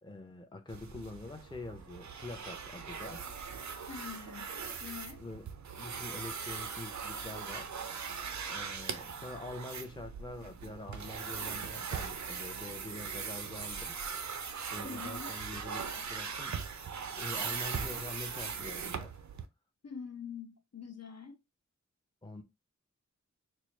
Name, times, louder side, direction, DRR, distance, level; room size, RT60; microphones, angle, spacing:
voice 1, 0.0-3.2 5.2-5.5 5.8-7.8 8.5-14.0 14.7-19.2 22.2-22.4, left 2 dB, 15° left, 0.6 m, -45 dB
sound 1, 0.7-19.5, right 6 dB, 70° right, 0.5 m, -40 dB
voice 2, 3.9-5.2 14.8-15.3 19.8-21.4, left 6 dB, 60° left, 0.8 m, -45 dB
4.5 x 2.0 x 3.1 m
wide cardioid pair, 60°, 29 cm